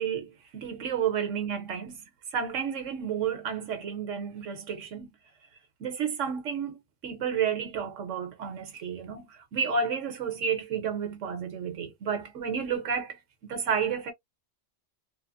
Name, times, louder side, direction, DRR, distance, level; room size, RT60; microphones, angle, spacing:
voice 1, 0.0-2.0 2.3-5.1 5.8-13.2 13.5-14.1, right 7 dB, 75° right, 1.2 m, -31 dB
3.3 x 2.0 x 2.4 m
omnidirectional pair, 1.3 m